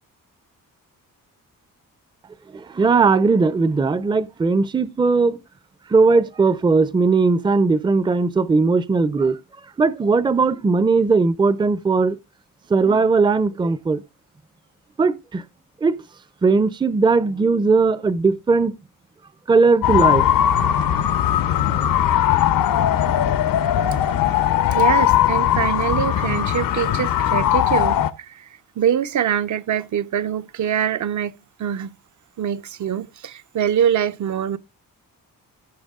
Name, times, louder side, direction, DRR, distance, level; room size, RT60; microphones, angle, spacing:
voice 1, 2.5-5.4 5.9-9.4 9.8-12.2 12.7-14.0 15.0-15.4 15.8-16.0 16.4-18.7 19.5-20.3 21.5-21.6, right 4 dB, 15° right, 0.5 m, -18 dB
sound 1, 19.8-28.1, left 11 dB, 80° left, 0.9 m, -19 dB
voice 2, 24.7-28.5 28.8-32.0 32.4-34.6, right 9 dB, 60° right, 0.7 m, -24 dB
17.0 x 7.0 x 3.6 m
wide cardioid pair, 170°, 34 cm